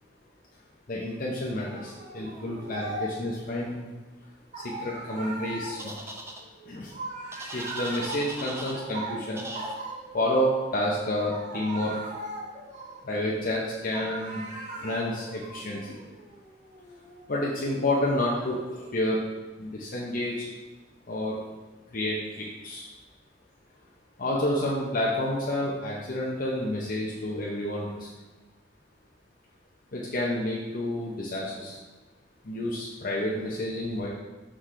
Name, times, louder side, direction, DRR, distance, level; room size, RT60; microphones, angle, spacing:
voice 1, 0.9-3.9 4.6-6.0 6.7-6.9 7.5-9.4 10.1-12.0 13.0-14.4 14.8-15.8 17.3-18.6 18.9-19.2 19.6-20.4 21.1-21.4 21.9-22.9 24.2-28.1 29.9-31.8 32.4-34.1, left 1 dB, 45° left, -4 dB, 0.8 m, -29 dB
sound 1, 1.6-3.4 4.5-10.5 11.2-13.5 13.9-19.0, right 2 dB, 40° right, 1.4 m, -40 dB
sound 2, 5.8-6.4 7.3-8.8 9.4-9.8, right 1 dB, 15° right, 0.5 m, -39 dB
6.2 x 6.0 x 3.3 m, 1.2 s
head